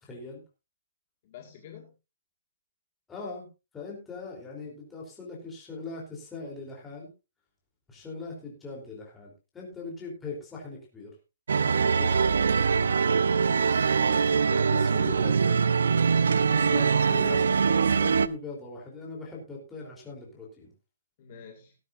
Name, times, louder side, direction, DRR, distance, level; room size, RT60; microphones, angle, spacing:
voice 1, 0.0-0.4 3.1-3.5 3.7-7.1 7.9-11.1 11.6-12.1 14.5-15.7 16.4-20.7, left 3 dB, 5° left, -3 dB, 3.5 m, -40 dB
voice 2, 1.2-1.9 11.8-12.3 13.2-13.6 21.2-21.8, left 7 dB, 30° left, 2 dB, 1.9 m, -47 dB
sound 1, 11.5-18.3, right 5 dB, 85° right, 0.7 m, -23 dB
18.5 x 9.9 x 2.6 m, 0.28 s
hypercardioid pair, 175°, 0 cm